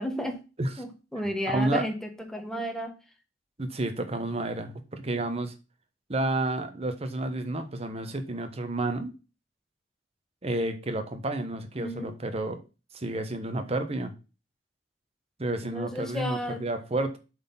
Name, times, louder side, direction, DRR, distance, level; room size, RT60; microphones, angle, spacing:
voice 1, 0.0-0.4 0.8-2.9 11.8-12.2 15.7-16.6, equal, 5° left, 1.4 m, -32 dB
voice 2, 1.5-1.8 3.6-5.5 6.1-9.1 10.4-12.6 12.9-14.1 15.4-17.2, right 2 dB, 35° right, 1.2 m, -30 dB
7.5 x 4.4 x 5.7 m
head